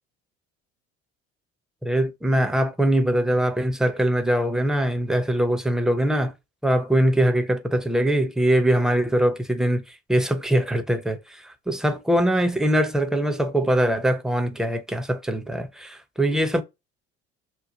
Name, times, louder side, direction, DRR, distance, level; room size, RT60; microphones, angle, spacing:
voice 1, 1.8-6.3 6.6-9.8 10.1-16.6, right 1 dB, ahead, 0.6 m, -22 dB
3.0 x 2.1 x 3.8 m
hypercardioid pair, 65°, 34 cm